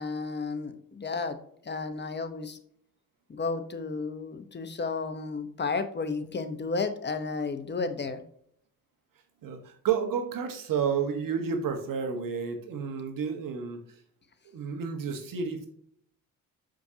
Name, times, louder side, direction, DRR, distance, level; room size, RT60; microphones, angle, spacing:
voice 1, 0.0-1.4 1.6-2.6 3.3-8.2, left 4 dB, 30° left, 9 dB, 1.0 m, -32 dB
voice 2, 9.4-13.8 14.5-15.7, right 6 dB, 70° right, 5 dB, 1.5 m, -31 dB
6.8 x 5.2 x 2.8 m, 0.66 s
cardioid pair, 80°, 35 cm